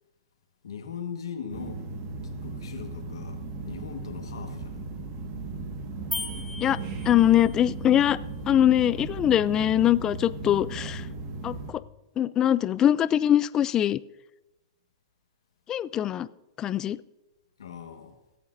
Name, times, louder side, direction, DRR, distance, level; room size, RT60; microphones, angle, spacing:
voice 1, 0.6-1.9 2.4-4.8 17.6-18.2, left 7 dB, 85° left, 1.5 m, -39 dB
sound 1, 1.5-11.7, right 3 dB, 45° right, 1.7 m, -37 dB
sound 2, 6.1-7.6, left 3 dB, 5° left, 0.8 m, -36 dB
voice 2, 7.1-8.2 8.5-11.0 11.4-11.5 12.2-14.0 15.7-16.3 16.6-17.0, left 11 dB, 25° left, 0.4 m, -22 dB
18.0 x 8.6 x 2.6 m
hypercardioid pair, 130°, 2 cm